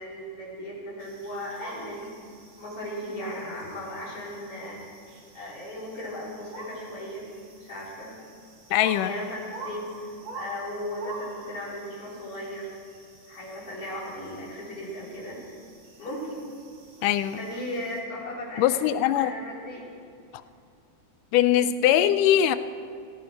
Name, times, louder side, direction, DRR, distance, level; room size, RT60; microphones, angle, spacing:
voice 1, 0.0-2.1 2.6-4.8 5.3-7.3 7.6-8.1 9.0-12.7 13.3-15.4 16.0-16.4 17.4-18.8 19.2-19.9, left 1 dB, 45° left, -5 dB, 4.9 m, -36 dB
sound 1, 1.0-18.0, right 3 dB, 80° right, 3.7 m, -47 dB
voice 2, 8.7-9.1 17.0-17.4 18.6-19.3 21.3-22.6, left 11 dB, 85° left, 12 dB, 2.2 m, -21 dB
18.0 x 17.5 x 4.5 m, 2.3 s
omnidirectional pair, 3.6 m